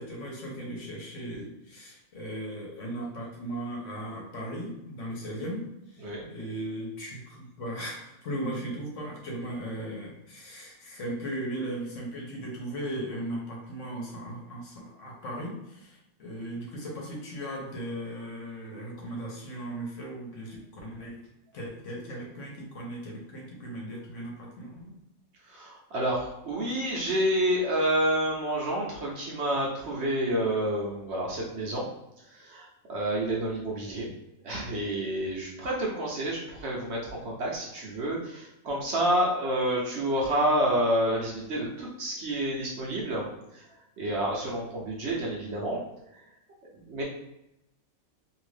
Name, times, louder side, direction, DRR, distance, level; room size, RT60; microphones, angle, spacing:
voice 1, 0.0-5.7 5.9-6.0 6.3-21.2 21.5-24.9, right 1 dB, 65° left, -2 dB, 1.1 m, -37 dB
voice 2, 25.5-31.8 32.2-34.1 34.4-43.7 44.0-45.8 46.1-46.2 46.9-47.0, right 1 dB, 60° right, -3 dB, 0.8 m, -29 dB
2.7 x 2.5 x 3.2 m, 0.88 s
omnidirectional pair, 1.5 m